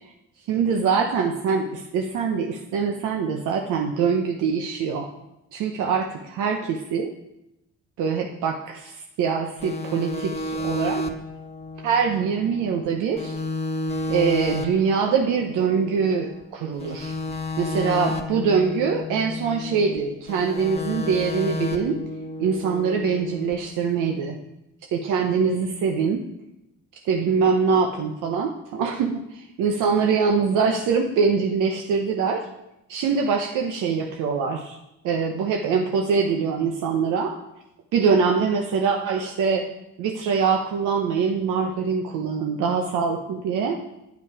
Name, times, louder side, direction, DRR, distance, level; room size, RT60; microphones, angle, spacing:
voice 1, 0.5-5.1 5.5-7.1 8.0-11.0 11.8-13.4 14.1-17.1 17.6-22.0 22.4-24.4 24.9-26.2 27.1-32.5 32.9-34.8 35.0-37.3 37.9-39.6 40.0-43.8, right 5 dB, 90° right, 2 dB, 0.9 m, -23 dB
sound 1, 9.6-12.9 13.2-16.4 16.8-20.0 20.3-23.5, left 2 dB, 20° left, 1.2 m, -32 dB
9.3 x 8.3 x 4.8 m, 0.88 s
cardioid pair, 90°, 30 cm